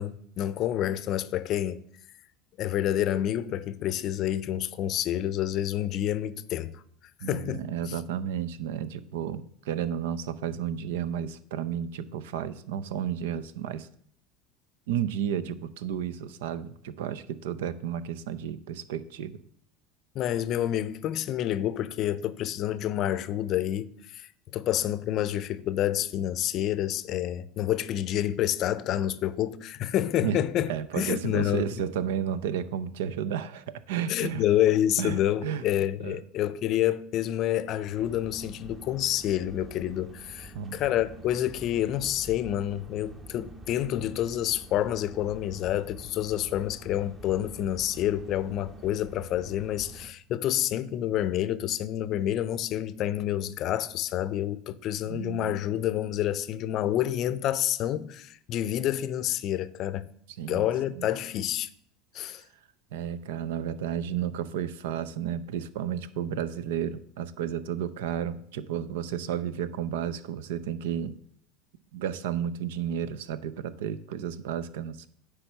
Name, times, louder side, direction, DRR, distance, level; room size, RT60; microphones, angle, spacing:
voice 1, 0.0-1.8 2.6-6.8 7.3-7.9 20.1-31.7 34.1-60.0 60.5-61.7 62.1-62.4, left 12 dB, 50° left, 0.5 m, -28 dB
voice 2, 7.2-13.9 14.9-19.4 30.2-30.4 30.7-34.5 35.0-35.2 35.4-35.7 36.0-36.2 40.5-40.8 55.1-55.6 60.4-60.7 61.0-61.1 62.9-71.2 71.9-75.1, right 9 dB, 75° right, 0.5 m, -32 dB
sound 1, 37.9-50.1, right 2 dB, 25° right, 1.1 m, -47 dB
9.7 x 3.4 x 6.8 m
hypercardioid pair, 85°, 0 cm